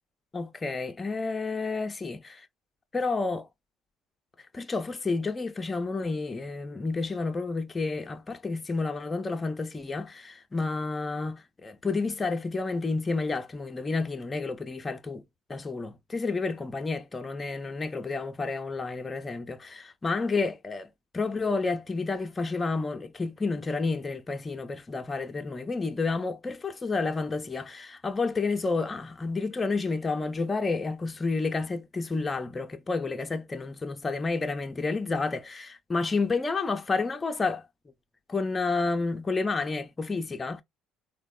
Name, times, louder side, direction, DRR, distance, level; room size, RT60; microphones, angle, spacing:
voice 1, 0.3-2.2 2.9-3.5 4.5-15.2 15.5-20.9 21.1-37.6 38.3-40.6, left 3 dB, 20° left, 0.5 m, -30 dB
3.4 x 2.1 x 2.2 m
supercardioid pair, 95°, 0 cm